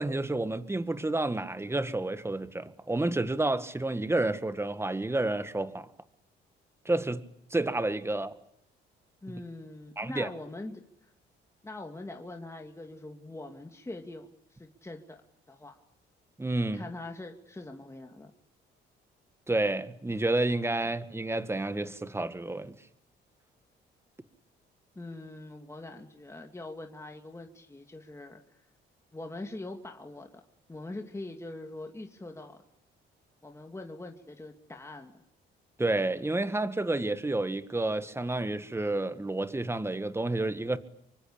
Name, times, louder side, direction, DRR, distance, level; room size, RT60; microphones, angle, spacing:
voice 1, 0.0-5.9 6.9-7.2 7.5-8.3 10.0-10.3 16.4-16.9 19.5-22.8 35.8-40.8, right 2 dB, 10° right, 1.8 m, -30 dB
voice 2, 9.2-10.8 11.6-15.2 15.5-15.8 16.7-18.3 25.0-28.4 29.1-30.3 30.7-32.6 33.4-35.1, left 2 dB, 15° left, 2.4 m, -43 dB
25.5 x 24.0 x 8.7 m
cardioid pair, 90°, 20 cm